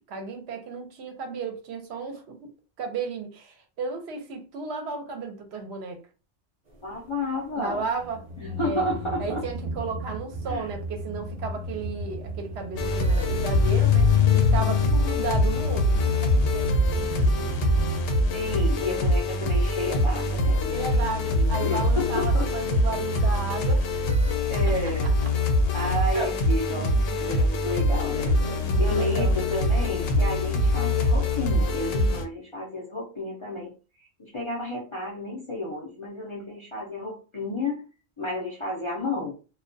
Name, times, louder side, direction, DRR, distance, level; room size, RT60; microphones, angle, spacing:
voice 1, 0.0-2.5 2.8-6.0 7.5-8.3 8.6-8.9 9.2-17.5 20.7-23.9 24.7-24.8 25.0-25.1 26.7-27.4 28.4-29.4, right 4 dB, 70° right, 0.8 m, -34 dB
voice 2, 6.8-7.8 8.4-9.4 10.5-10.7 18.3-22.5 24.5-25.1 25.7-27.0 27.2-28.4 28.7-33.7 34.0-37.9 38.2-39.3, left 2 dB, 40° left, 0.4 m, -31 dB
sound 1, 8.0-19.6 25.8-25.9 26.1-26.3, left 5 dB, 40° right, 0.8 m, -28 dB
sound 2, 12.8-32.2, left 1 dB, 80° left, 0.9 m, -24 dB
2.3 x 2.2 x 2.5 m
omnidirectional pair, 1.2 m